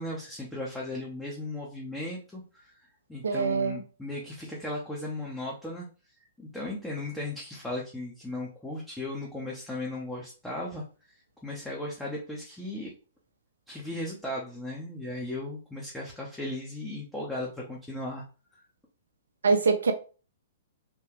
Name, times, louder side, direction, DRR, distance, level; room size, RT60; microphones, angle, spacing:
voice 1, 0.0-5.9 6.4-12.9 13.7-18.2, left 1 dB, 5° left, 0.9 m, -36 dB
voice 2, 3.2-3.8 19.4-19.9, right 4 dB, 70° right, 0.7 m, -24 dB
3.5 x 2.8 x 3.0 m
figure-of-eight pair, 110°, 0 cm